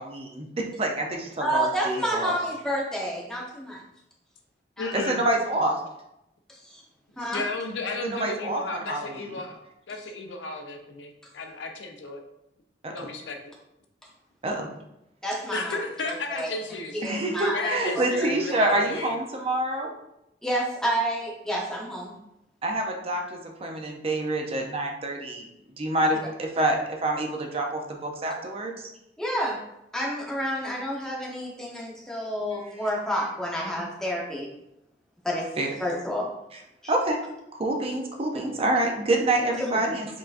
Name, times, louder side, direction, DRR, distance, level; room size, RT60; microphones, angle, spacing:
voice 1, 0.0-1.1 1.4-2.3 4.9-5.7 8.0-9.3 12.8-13.1 14.4-14.7 17.0-19.9 22.6-25.5 25.8-28.9 35.6-35.7 36.9-37.2 37.5-40.2, right 1 dB, 35° right, 2 dB, 0.5 m, -27 dB
voice 2, 1.4-3.8 4.8-4.9 6.5-6.8 7.2-7.4 15.2-15.8 16.0-16.6 17.0-17.7 18.0-18.3 18.6-18.7 20.4-22.1 29.2-29.6 29.9-34.5 35.2-35.4 35.8-36.3 36.8-36.9 39.6-39.8, equal, 5° left, -3 dB, 0.8 m, -29 dB
voice 3, 4.8-5.2 7.2-9.6 9.9-12.2 12.9-13.5 15.5-17.0 17.5-19.2, left 3 dB, 80° left, 4 dB, 0.6 m, -34 dB
4.6 x 3.7 x 2.5 m, 0.84 s
head